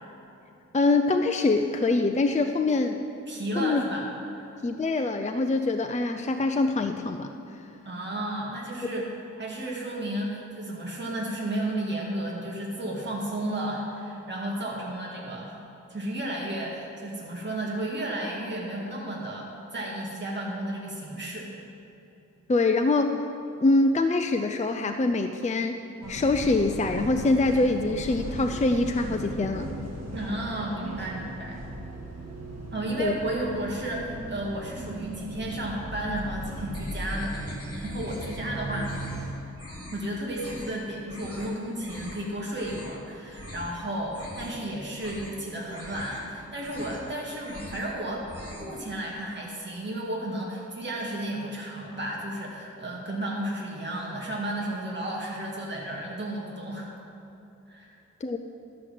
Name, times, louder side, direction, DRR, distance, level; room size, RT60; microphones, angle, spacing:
voice 1, 0.7-3.0 3.6-3.8 4.6-7.3 22.5-23.3 23.6-25.8 26.1-29.7 33.0-33.1 58.2-58.4, left 3 dB, 25° left, 6 dB, 0.5 m, -24 dB
voice 2, 3.3-4.1 4.4-4.5 7.8-9.1 9.4-15.6 15.9-21.5 30.1-31.6 32.7-37.4 37.8-38.9 39.9-48.3 48.6-56.9 57.7-57.9, right 1 dB, 35° right, -4 dB, 1.9 m, -33 dB
sound 1, 26.0-39.3, right 1 dB, 55° right, 1.9 m, -37 dB
sound 2, 36.7-38.4 38.7-39.2 39.6-40.0 40.3-40.7 41.1-41.5 41.8-42.2 42.5-43.0 43.3-43.7 44.0-44.6 44.9-45.4 45.7-46.2 46.5-47.1 47.4-47.9 48.2-48.7, left 1 dB, 50° left, 2.6 m, -43 dB
12.5 x 6.4 x 7.5 m, 2.8 s
wide cardioid pair, 105°, 30 cm